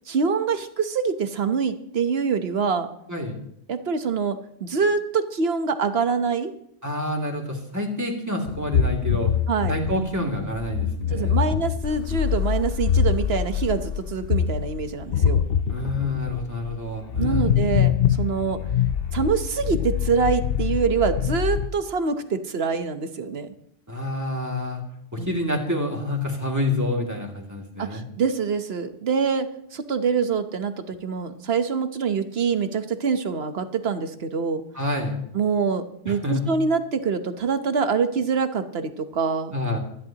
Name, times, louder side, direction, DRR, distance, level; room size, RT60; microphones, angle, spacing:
voice 1, 0.1-2.9 3.7-6.5 9.5-9.8 11.1-15.4 17.2-18.6 19.1-23.5 25.2-25.3 27.8-34.6 35.3-39.5, right 5 dB, 65° right, 9 dB, 1.2 m, -25 dB
voice 2, 6.8-9.3 9.7-11.6 15.7-17.6 23.9-24.8 25.1-28.0 34.7-35.2 36.1-36.4 39.5-39.8, left 1 dB, 15° right, 0 dB, 2.5 m, -28 dB
sound 1, 8.5-21.7, left 8 dB, 65° left, 0.8 m, -24 dB
24.0 x 11.0 x 2.9 m, 0.74 s
omnidirectional pair, 1.1 m